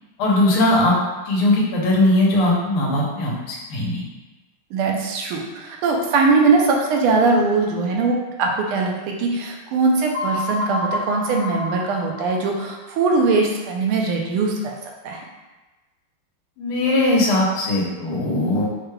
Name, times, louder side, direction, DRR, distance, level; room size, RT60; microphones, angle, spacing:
voice 1, 0.2-0.9 1.3-4.0 16.6-18.7, left 1 dB, 85° left, -3 dB, 1.7 m, -19 dB
voice 2, 4.7-15.2, right 3 dB, 85° right, 0 dB, 1.5 m, -21 dB
sound 1, 10.1-12.7, left 2 dB, 60° right, 1.0 m, -28 dB
5.0 x 2.2 x 3.1 m, 1.2 s
omnidirectional pair, 2.4 m